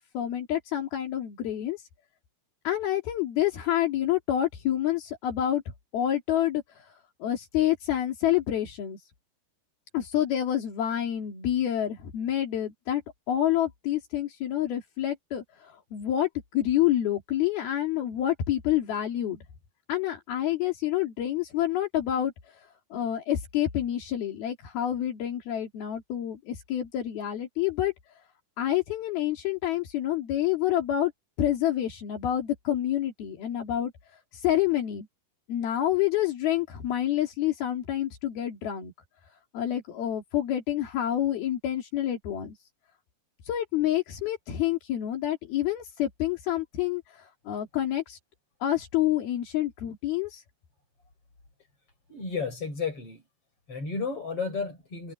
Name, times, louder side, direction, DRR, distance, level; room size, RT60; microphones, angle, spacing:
voice 1, 0.1-1.9 2.6-5.6 5.9-6.9 7.2-9.0 9.9-13.0 13.3-19.4 19.9-22.6 22.9-27.9 28.6-31.1 31.4-33.9 34.3-35.1 35.5-38.9 39.5-42.6 43.4-48.2 48.6-50.4, left 12 dB, 80° left, 4.6 m, -28 dB
voice 2, 52.1-53.2 53.7-55.1, left 5 dB, 35° left, 8.1 m, -32 dB
omnidirectional pair, 4.3 m